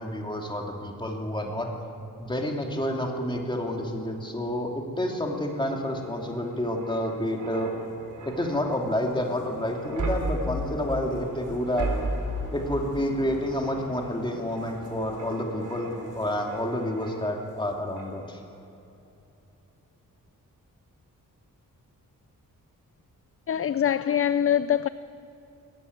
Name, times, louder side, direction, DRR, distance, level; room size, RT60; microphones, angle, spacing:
voice 1, 0.0-1.7 2.2-7.7 8.2-11.9 12.5-18.4, left 1 dB, 15° left, 2.8 m, -29 dB
sound 1, 5.3-17.6 18.0-18.2, right 1 dB, 60° right, 4.1 m, -36 dB
voice 2, 23.5-24.9, left 9 dB, 40° left, 0.4 m, -23 dB
21.0 x 15.0 x 9.5 m
wide cardioid pair, 105°, 34 cm